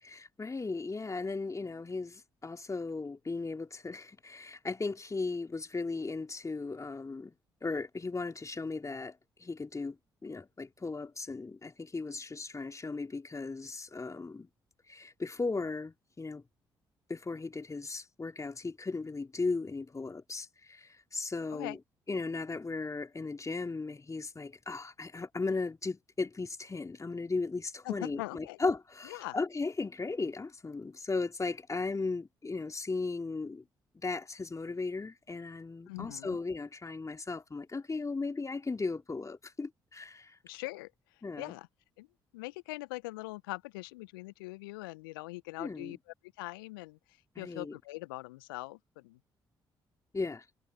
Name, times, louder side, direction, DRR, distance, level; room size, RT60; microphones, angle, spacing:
voice 1, 0.0-7.3 7.6-9.1 9.4-10.0 10.2-14.5 14.9-16.4 17.1-21.8 22.1-33.6 33.9-40.4 41.2-41.6 45.6-46.0 47.4-47.7 50.1-50.4, left 3 dB, 25° left, 3.3 m, -36 dB
voice 2, 27.8-28.6 29.0-29.4 35.9-36.4 40.4-41.7 42.0-42.1 42.3-49.2, left 22 dB, 75° left, 0.7 m, -42 dB
figure-of-eight pair, 40°, 12 cm